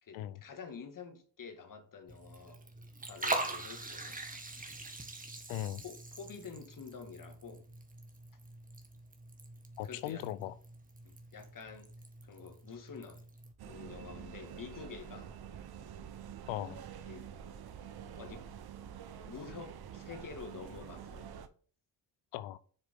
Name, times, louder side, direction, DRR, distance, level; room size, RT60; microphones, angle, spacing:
voice 1, 0.0-2.6 3.0-4.3 5.8-7.6 9.8-10.2 11.0-11.9 12.2-13.2 13.6-15.3 17.1-17.3 18.2-18.5 19.3-21.3, left 5 dB, 45° left, 1.8 m, -48 dB
Liquid, 2.1-13.5, right 2 dB, 20° right, 1.6 m, -43 dB
voice 2, 5.5-5.8 9.8-10.5 16.5-16.8 22.3-22.6, left 13 dB, 85° left, 0.6 m, -38 dB
sound 1, 13.6-21.5, right 9 dB, 55° right, 0.9 m, -47 dB
6.9 x 4.7 x 3.6 m
supercardioid pair, 55°, 45 cm